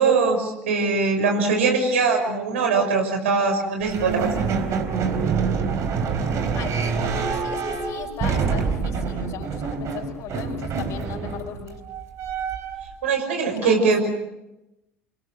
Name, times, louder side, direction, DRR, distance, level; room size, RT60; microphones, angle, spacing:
voice 1, 0.0-4.3 13.0-14.1, right 4 dB, 70° right, 4 dB, 5.8 m, -21 dB
sound 1, 3.8-12.9, right 5 dB, 45° right, 4.0 m, -26 dB
voice 2, 6.5-11.8 13.6-14.1, left 9 dB, 50° left, 2 dB, 5.8 m, -37 dB
29.0 x 25.0 x 6.3 m, 0.92 s
figure-of-eight pair, 65°, 7 cm